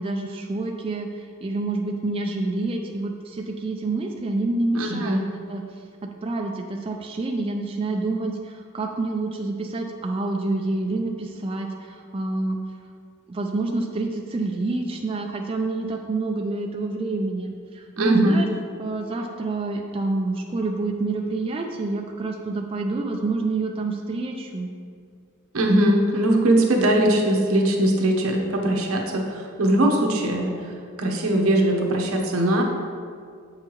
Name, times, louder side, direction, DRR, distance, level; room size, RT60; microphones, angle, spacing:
voice 1, 0.0-12.6 13.3-18.5 18.8-24.7, right 2 dB, 25° right, 2 dB, 0.3 m, -28 dB
voice 2, 4.7-5.3 18.0-18.4 25.5-30.5 31.0-32.6, right 1 dB, 80° right, 1 dB, 0.9 m, -20 dB
7.7 x 5.6 x 3.0 m, 2.2 s
head